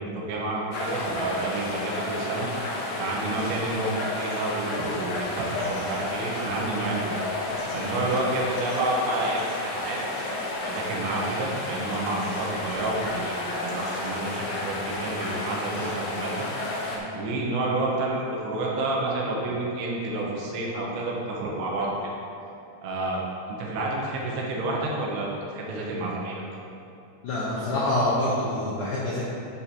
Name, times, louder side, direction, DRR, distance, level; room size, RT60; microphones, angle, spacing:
voice 1, 0.0-2.5 3.0-7.2 7.7-10.0 10.6-16.5 17.1-21.9 22.8-23.2 23.5-26.4, right 2 dB, 85° right, -2 dB, 3.3 m, -29 dB
sound 1, 0.7-17.0, left 2 dB, 75° left, 2.2 m, -32 dB
voice 2, 27.2-29.2, left 1 dB, 90° left, -7 dB, 1.7 m, -26 dB
9.4 x 6.8 x 2.8 m, 2.7 s
omnidirectional pair, 5.2 m